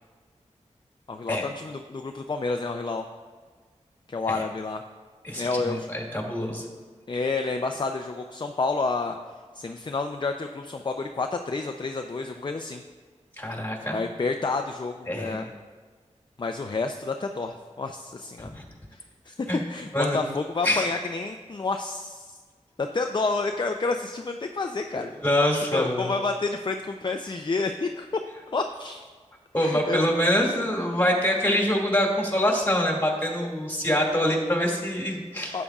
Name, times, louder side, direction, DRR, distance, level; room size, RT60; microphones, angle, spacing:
voice 1, 1.1-3.0 4.1-4.8 5.4-5.9 7.1-9.2 9.5-12.8 13.9-15.5 16.4-18.5 18.9-22.4 22.8-25.1 25.7-28.1 28.5-29.1 29.6-30.1 35.5-35.6, left 3 dB, 40° left, 5 dB, 0.5 m, -29 dB
voice 2, 5.2-6.7 13.4-14.0 15.1-15.5 18.4-18.6 19.5-19.6 19.9-20.2 20.6-20.9 25.2-26.1 29.5-35.6, equal, 15° left, -1 dB, 2.3 m, -25 dB
12.5 x 8.4 x 2.4 m, 1.5 s
wide cardioid pair, 55°, 12 cm